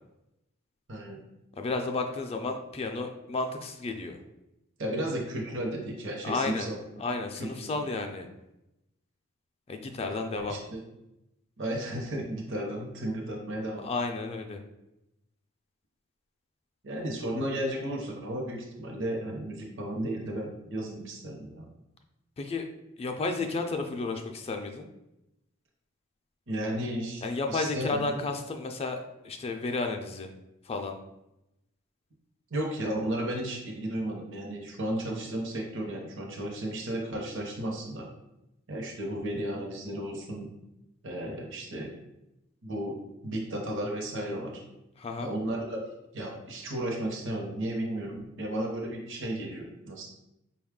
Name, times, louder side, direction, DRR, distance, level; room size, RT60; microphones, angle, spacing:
voice 1, 0.9-1.2 4.8-7.0 7.4-7.9 10.1-10.2 10.5-10.8 11.6-13.8 16.8-21.7 26.5-27.2 27.5-28.2 32.5-38.1 38.7-40.5 41.0-41.9 42.6-44.6 45.2-45.8 46.1-50.1, right 1 dB, 60° right, -1 dB, 0.8 m, -34 dB
voice 2, 1.5-4.2 6.2-6.7 7.0-8.3 9.7-10.6 13.8-14.6 22.4-22.6 23.0-24.9 27.2-30.3 30.6-31.0 45.0-45.3, left 3 dB, 30° left, 5 dB, 0.3 m, -32 dB
5.0 x 2.3 x 3.6 m, 0.89 s
head